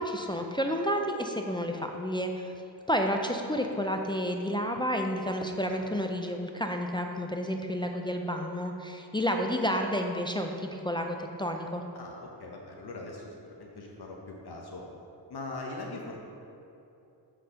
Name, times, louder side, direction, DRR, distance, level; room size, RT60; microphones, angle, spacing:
voice 1, 0.0-2.5 2.9-11.8, equal, 10° left, 3 dB, 0.4 m, -30 dB
voice 2, 11.9-14.9 15.3-16.2, left 2 dB, 60° left, 0 dB, 1.0 m, -41 dB
7.8 x 4.1 x 4.9 m, 2.8 s
wide cardioid pair, 110°, 43 cm